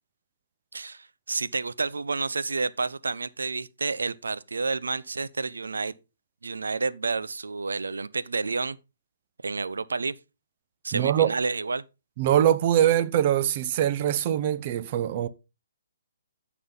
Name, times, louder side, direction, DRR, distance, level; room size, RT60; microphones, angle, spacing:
voice 1, 0.7-5.9 6.4-8.8 9.4-10.2 10.8-11.8, right 4 dB, 80° right, 0.8 m, -30 dB
voice 2, 10.9-11.3 12.2-15.3, right 11 dB, 40° right, 0.9 m, -23 dB
14.5 x 6.1 x 3.9 m
figure-of-eight pair, 140°, 0 cm